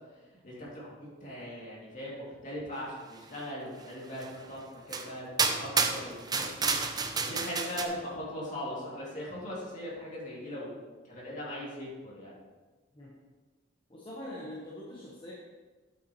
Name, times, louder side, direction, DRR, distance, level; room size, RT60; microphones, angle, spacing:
voice 1, 0.3-6.7 7.3-10.7 11.0-12.3, equal, 40° left, -5 dB, 2.5 m, -40 dB
sound 1, 4.2-4.3 4.9-5.1 5.4-7.9, right 5 dB, 20° right, 0.5 m, -30 dB
voice 2, 13.9-15.3, left 1 dB, 25° left, -6 dB, 1.2 m, -43 dB
8.6 x 8.2 x 3.1 m, 1.3 s
head